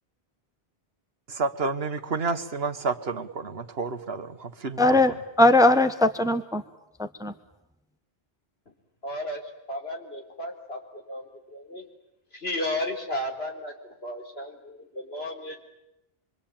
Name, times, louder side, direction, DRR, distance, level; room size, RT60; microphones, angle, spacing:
voice 1, 1.3-5.0, right 4 dB, 65° right, 9 dB, 1.6 m, -30 dB
voice 2, 4.8-6.6 7.0-7.3, left 2 dB, 5° right, 9 dB, 1.1 m, -20 dB
voice 3, 9.0-11.8 12.3-15.6, left 1 dB, 65° left, 1 dB, 4.2 m, -34 dB
27.0 x 23.5 x 8.9 m, 0.87 s
omnidirectional pair, 1.1 m